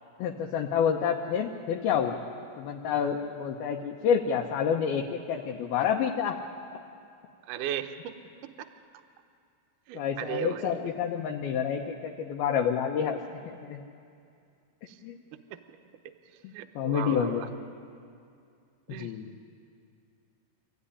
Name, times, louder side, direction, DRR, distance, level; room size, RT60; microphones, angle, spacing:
voice 1, 0.2-2.2 2.6-6.4 9.9-13.8 15.0-15.2 16.4-17.5 18.9-19.3, left 7 dB, 75° left, 1 dB, 2.8 m, -29 dB
voice 2, 7.5-8.2 9.9-10.9 15.5-15.6 16.5-17.5 18.9-19.1, right 10 dB, 70° right, 6 dB, 2.1 m, -36 dB
25.5 x 14.5 x 10.0 m, 2.4 s
omnidirectional pair, 4.7 m